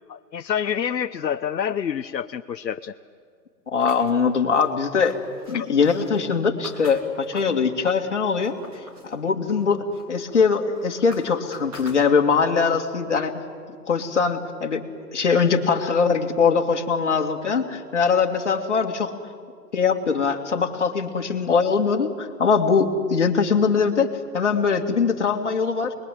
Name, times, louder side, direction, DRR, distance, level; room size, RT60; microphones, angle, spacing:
voice 1, 0.1-2.9 5.5-5.7, left 8 dB, 85° left, 8 dB, 1.0 m, -27 dB
voice 2, 3.7-5.1 5.5-8.6 9.0-13.3 13.9-14.8 15.1-19.1 19.7-24.1 24.3-25.9, left 5 dB, 45° left, 3 dB, 2.4 m, -22 dB
sound 1, 3.8-7.6 8.1-9.1 9.5-12.5, left 1 dB, 20° right, 3.6 m, -46 dB
27.0 x 21.5 x 9.3 m, 2.1 s
hypercardioid pair, 180°, 50 cm